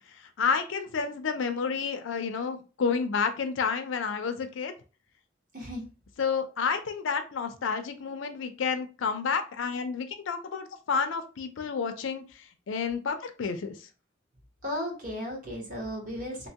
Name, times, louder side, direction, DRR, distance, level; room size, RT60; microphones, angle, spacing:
voice 1, 0.4-4.7 6.2-12.2 12.7-13.8, left 5 dB, 85° left, 0.5 m, -30 dB
voice 2, 5.5-5.8 14.6-16.5, left 1 dB, 45° right, 1.2 m, -35 dB
2.9 x 2.2 x 2.8 m
head